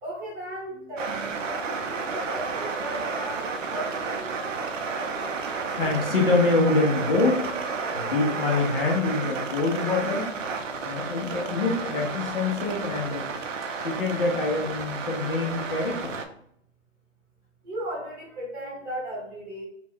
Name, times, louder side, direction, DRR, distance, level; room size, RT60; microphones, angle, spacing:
voice 1, 0.0-4.4 13.6-13.8 17.6-19.6, right 1 dB, 15° right, -7 dB, 0.8 m, -36 dB
sound 1, 1.0-16.3, right 4 dB, 80° right, 0.6 m, -32 dB
voice 2, 1.7-2.1 4.5-5.2 5.8-10.3 10.9-13.3 13.8-16.1, left 3 dB, 50° left, -1 dB, 0.8 m, -26 dB
2.4 x 2.2 x 3.4 m, 0.69 s
hypercardioid pair, 150°, 37 cm